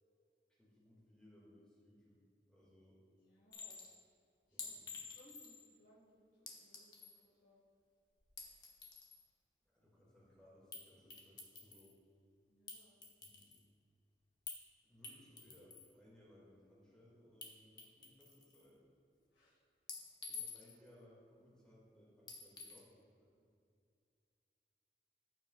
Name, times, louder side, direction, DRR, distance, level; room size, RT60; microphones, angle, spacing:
voice 1, 0.5-2.2 2.5-3.0 4.5-5.0 9.6-11.9 13.2-13.6 14.9-18.8 20.3-23.5, left 1 dB, 5° left, -6 dB, 2.1 m, -64 dB
voice 2, 3.2-3.8 4.5-7.6 12.5-13.0 19.3-19.6, equal, 85° left, -7 dB, 1.9 m, -67 dB
Chink clink, 3.5-3.9 4.6-5.7 6.5-7.2 8.2-9.2 10.7-10.9 11.1-11.9 12.7-13.6 14.5-14.6 15.0-15.9 17.4-17.5 17.8-18.6 19.9-20.9 22.3-22.8, left 5 dB, 25° left, 1.0 m, -50 dB
14.5 x 7.2 x 2.4 m, 2.4 s
head